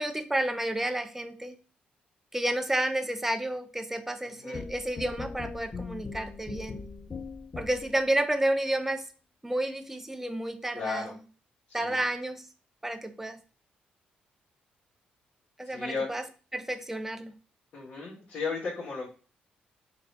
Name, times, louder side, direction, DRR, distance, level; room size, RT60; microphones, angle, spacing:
voice 1, 0.0-1.6 2.3-6.8 7.6-9.1 9.4-11.1 11.7-12.5 12.8-13.4 15.6-16.2 16.5-17.3, right 1 dB, 10° right, 8 dB, 0.5 m, -31 dB
voice 2, 4.3-4.7 10.7-11.2 11.7-12.0 15.6-16.1 17.7-19.1, left 4 dB, 65° left, -8 dB, 1.8 m, -35 dB
sound 1, 4.5-8.1, left 4 dB, 35° left, 0.5 m, -40 dB
3.8 x 2.7 x 3.3 m, 0.35 s
cardioid pair, 70°, 3 cm